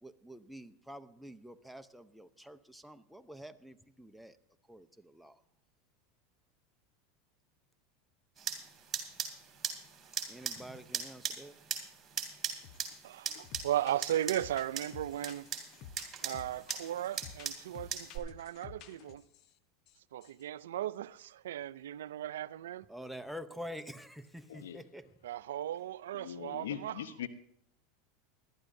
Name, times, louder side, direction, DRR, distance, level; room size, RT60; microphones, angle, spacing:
voice 1, 0.0-4.4 4.7-5.4 10.3-11.5 22.9-25.1, equal, ahead, 0.7 m, -47 dB
sound 1, 8.4-18.2, right 7 dB, 25° right, 3.0 m, -40 dB
sound 2, 12.6-13.0 13.3-19.5 19.9-20.0 20.2-20.4, left 8 dB, 50° left, 0.9 m, -52 dB
voice 2, 13.0-15.6 16.2-19.2 20.1-22.9 25.2-26.9, right 12 dB, 85° right, 0.4 m, -36 dB
voice 3, 24.5-24.8 26.1-27.3, left 10 dB, 85° left, 0.9 m, -41 dB
20.5 x 12.5 x 2.7 m
hypercardioid pair, 105°, 0 cm